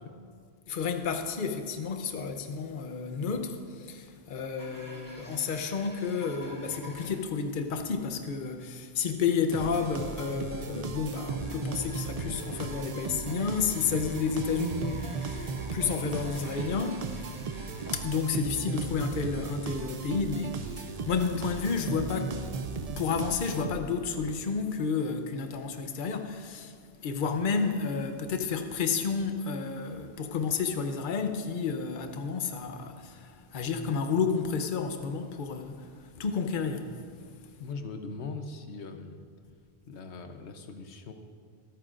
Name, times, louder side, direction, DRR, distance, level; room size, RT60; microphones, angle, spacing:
voice 1, 0.7-17.0 17.9-22.4 23.0-26.7 27.0-36.9, left 5 dB, 55° left, 0.9 m, -31 dB
sound 1, 4.6-7.7 8.0-8.1 8.5-8.6 9.3-9.4 11.2-18.6 18.9-19.0 19.7-19.8 20.3-20.5 20.9-21.9 22.4-22.8 24.0-24.1 24.3-24.4, equal, 20° right, 1.6 m, -48 dB
sound 2, 9.5-24.1, right 4 dB, 45° right, 0.6 m, -36 dB
voice 2, 37.6-39.3 39.9-41.1, left 4 dB, 90° left, 1.2 m, -40 dB
24.5 x 9.1 x 2.5 m
omnidirectional pair, 1.1 m